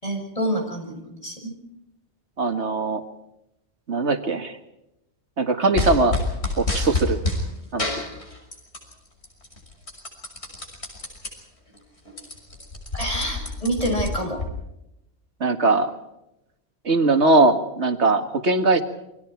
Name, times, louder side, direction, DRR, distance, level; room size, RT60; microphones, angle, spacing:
voice 1, 0.0-1.5 12.9-14.4, equal, 30° left, 2 dB, 7.3 m, -27 dB
voice 2, 2.4-3.0 3.9-4.6 5.4-6.2 6.6-7.2 7.7-8.0 15.4-15.9 16.9-18.8, right 3 dB, 75° right, 7 dB, 2.1 m, -20 dB
sound 1, 5.7-7.4 7.8-8.9 9.2-11.3 11.7-11.8 12.0-14.5, left 2 dB, 70° left, 6.3 m, -27 dB
28.5 x 24.0 x 4.6 m, 0.87 s
omnidirectional pair, 1.2 m